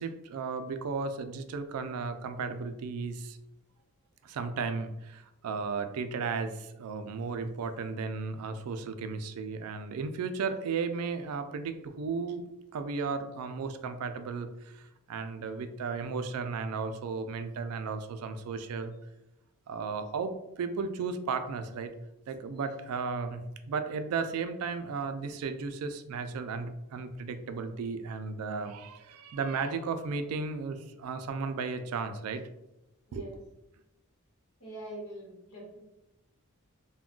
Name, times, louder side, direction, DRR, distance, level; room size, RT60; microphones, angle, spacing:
voice 1, 0.0-3.4 4.2-12.5 12.7-18.9 19.7-21.9 22.3-32.4 33.1-33.3, right 4 dB, 85° right, 9 dB, 0.3 m, -35 dB
voice 2, 34.6-35.8, right 1 dB, 85° left, -3 dB, 1.1 m, -44 dB
2.3 x 2.2 x 3.6 m, 0.90 s
head